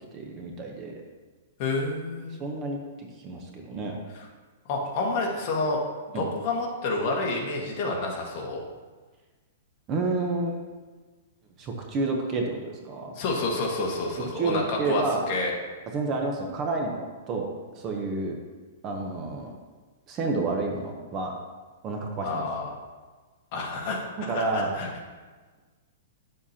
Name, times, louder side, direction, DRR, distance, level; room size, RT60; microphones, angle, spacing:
voice 1, 0.1-1.0 2.4-2.8 3.2-4.0 6.1-6.2 9.9-10.6 11.6-13.1 14.2-15.2 15.9-17.5 17.7-18.4 18.8-19.5 20.1-21.3 21.8-22.4 24.3-24.7, right 3 dB, 25° right, 1 dB, 0.8 m, -29 dB
voice 2, 1.6-2.3 4.1-4.3 4.7-5.8 6.1-8.6 13.1-15.5 22.2-22.7 23.5-24.9, left 3 dB, 35° left, -1 dB, 1.5 m, -29 dB
10.0 x 7.4 x 2.8 m, 1.4 s
hypercardioid pair, 165°, 0 cm